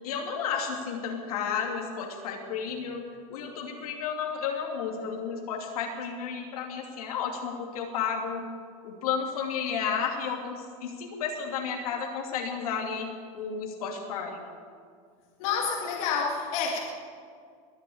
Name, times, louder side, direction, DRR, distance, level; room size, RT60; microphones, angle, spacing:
voice 1, 0.0-3.0 3.3-8.4 8.8-13.1 13.3-14.4, left 6 dB, 85° left, 2 dB, 2.6 m, -32 dB
voice 2, 15.4-16.8, left 6 dB, 70° left, 0 dB, 2.1 m, -28 dB
21.0 x 7.1 x 8.5 m, 2.1 s
supercardioid pair, 125°, 18 cm